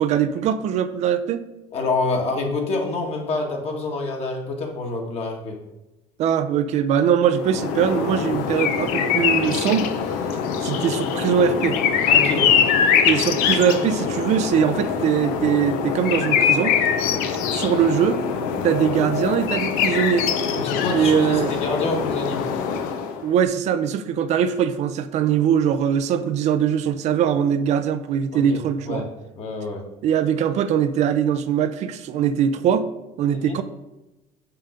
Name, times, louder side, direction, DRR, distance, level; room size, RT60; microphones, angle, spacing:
voice 1, 0.0-1.4 6.2-9.9 10.6-11.8 13.0-16.7 17.5-18.2 18.6-20.3 20.9-21.6 23.2-29.0 30.0-32.9 33.2-33.6, right 8 dB, 50° right, 10 dB, 0.6 m, -21 dB
voice 2, 1.7-5.6 12.1-12.5 20.5-22.4 28.3-28.6 28.9-29.1 29.4-29.8 33.3-33.6, left 3 dB, 45° left, 1 dB, 1.9 m, -27 dB
sound 1, 7.3-23.3, left 7 dB, 80° left, 0.9 m, -23 dB
7.0 x 5.7 x 5.2 m, 0.97 s
cardioid pair, 140°, 14 cm